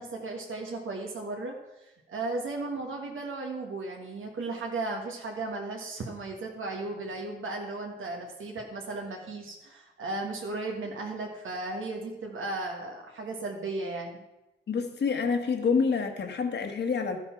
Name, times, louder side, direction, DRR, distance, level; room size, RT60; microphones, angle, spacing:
voice 1, 0.0-14.2, right 2 dB, 90° right, 0 dB, 1.6 m, -35 dB
voice 2, 14.7-17.2, left 5 dB, 60° left, 6 dB, 1.4 m, -27 dB
12.5 x 6.7 x 5.8 m, 1.0 s
wide cardioid pair, 135°, 20 cm